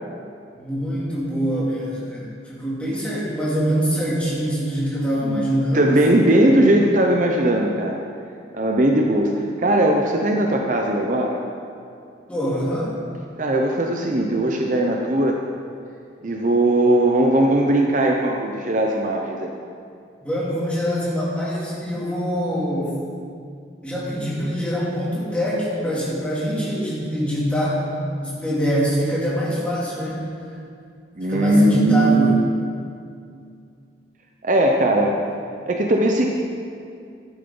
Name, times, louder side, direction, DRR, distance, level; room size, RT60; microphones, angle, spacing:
voice 1, 0.6-6.4 12.3-13.0 20.2-23.0 23.8-27.8 28.2-30.3 31.3-32.4, equal, 5° left, -7 dB, 2.7 m, -24 dB
voice 2, 5.2-8.0 8.5-11.4 13.4-15.3 16.2-19.5 31.2-32.4 34.4-35.2 35.7-36.3, right 1 dB, 45° right, 1 dB, 0.8 m, -19 dB
13.0 x 10.5 x 3.9 m, 2.4 s
head